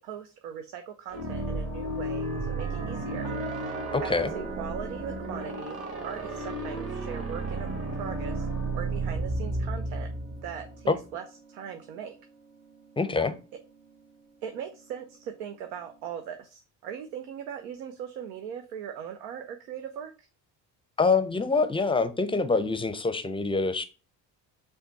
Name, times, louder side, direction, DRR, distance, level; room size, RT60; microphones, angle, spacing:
voice 1, 0.0-3.3 4.0-7.7 7.9-8.5 8.7-10.1 10.4-12.1 14.4-20.3, right 8 dB, 90° right, 0.6 m, -40 dB
sound 1, 1.1-10.8, right 2 dB, 30° right, 1.1 m, -33 dB
sound 2, 2.2-16.1, right 5 dB, 65° right, 1.4 m, -47 dB
voice 2, 3.9-4.3 10.9-11.0 13.0-13.3 21.0-23.8, left 4 dB, 10° left, 0.5 m, -25 dB
5.5 x 2.3 x 3.9 m
supercardioid pair, 60°, 45 cm